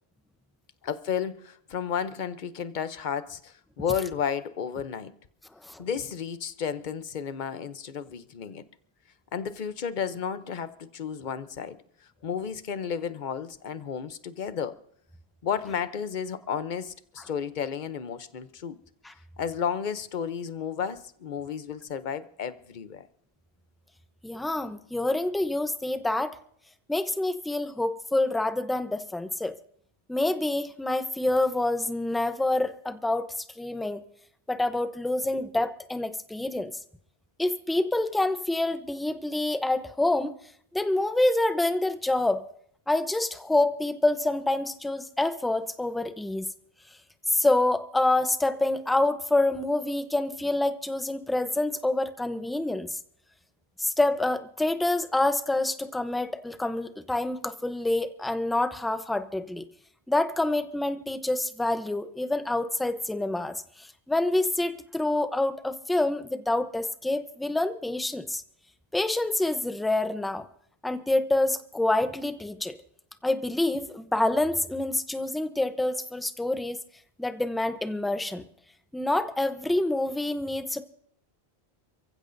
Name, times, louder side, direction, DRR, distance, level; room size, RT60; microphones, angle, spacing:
voice 1, 0.8-5.1 5.8-8.6 9.3-11.8 12.2-14.8 15.4-18.8 19.4-23.1, left 7 dB, 50° left, 0.9 m, -32 dB
voice 2, 24.2-26.4 26.9-29.6 30.1-34.0 34.5-36.7 37.4-40.3 40.7-42.4 42.9-46.5 47.3-53.0 53.8-59.7 60.1-68.4 68.9-70.5 70.8-72.8 73.2-76.8 77.2-78.4 78.9-80.8, left 2 dB, ahead, 0.6 m, -27 dB
28.5 x 15.5 x 2.6 m
omnidirectional pair, 1.1 m